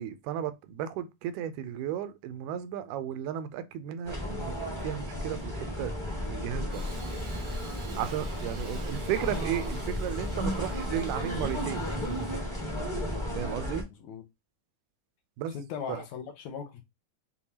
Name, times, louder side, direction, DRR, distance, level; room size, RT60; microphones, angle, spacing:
voice 1, 0.0-4.5 4.8-6.0 6.3-6.8 8.0-11.9 13.4-13.9 15.4-15.6 15.9-16.0, right 10 dB, 85° right, 2.0 m, -34 dB
sound 1, 4.0-13.8, equal, 25° left, 0.6 m, -33 dB
Engine starting / Sawing, 6.7-12.4, right 4 dB, 65° right, 1.0 m, -49 dB
voice 2, 15.5-16.8, left 7 dB, 75° left, 1.8 m, -38 dB
7.0 x 2.3 x 2.8 m
omnidirectional pair, 3.5 m